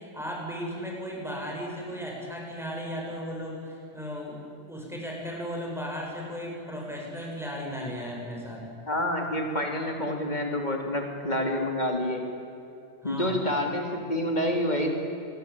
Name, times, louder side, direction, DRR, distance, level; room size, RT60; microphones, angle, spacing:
voice 1, 0.0-4.4 4.7-8.6 13.0-13.4, equal, ahead, -2 dB, 7.6 m, -36 dB
voice 2, 8.9-12.2 13.0-14.9, left 1 dB, 35° left, 2 dB, 3.7 m, -28 dB
28.0 x 21.5 x 8.9 m, 2.7 s
omnidirectional pair, 1.3 m